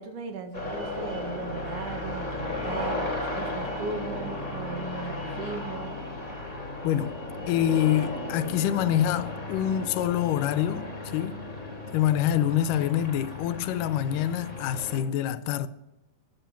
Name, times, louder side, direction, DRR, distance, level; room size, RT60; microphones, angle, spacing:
voice 1, 0.0-6.0, right 4 dB, 75° right, 3.2 m, -37 dB
sound 1, 0.5-15.0, left 2 dB, 25° left, 3.7 m, -35 dB
voice 2, 6.8-7.2 7.5-11.4 11.9-15.7, left 11 dB, 90° left, 2.3 m, -26 dB
14.5 x 9.6 x 5.9 m
omnidirectional pair, 3.7 m